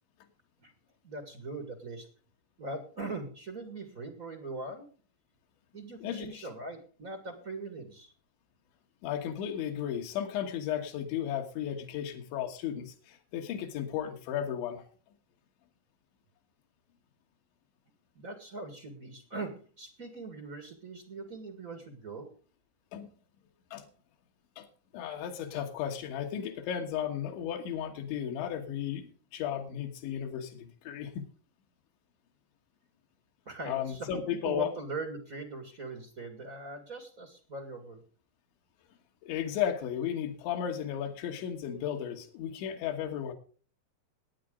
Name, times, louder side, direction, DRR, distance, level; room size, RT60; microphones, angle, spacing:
voice 1, 1.0-2.1 2.6-4.9 5.7-8.1 18.1-22.3 33.4-38.0, right 3 dB, 55° right, 7 dB, 0.9 m, -41 dB
voice 2, 6.0-6.5 9.0-14.8 22.9-23.1 23.7-23.9 24.6-24.7 24.9-31.3 33.7-34.7 39.2-43.3, left 9 dB, 85° left, 2 dB, 3.8 m, -34 dB
19.0 x 9.0 x 3.8 m, 0.39 s
omnidirectional pair, 5.1 m